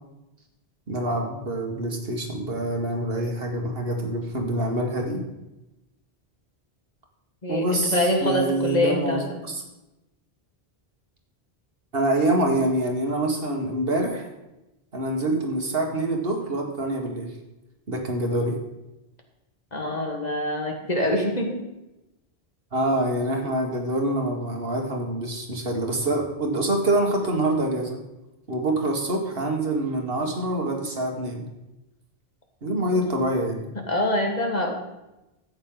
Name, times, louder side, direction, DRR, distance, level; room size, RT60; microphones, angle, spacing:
voice 1, 0.9-5.2 7.5-9.2 9.5-9.6 11.9-14.3 14.9-17.3 17.9-18.5 22.7-28.0 28.5-31.4 32.6-33.6, right 1 dB, 65° right, 1 dB, 1.9 m, -25 dB
voice 2, 7.4-9.4 19.7-21.6 32.9-33.0 33.9-34.7, left 1 dB, 40° left, 1 dB, 1.8 m, -25 dB
13.5 x 8.8 x 3.9 m, 0.96 s
omnidirectional pair, 1.0 m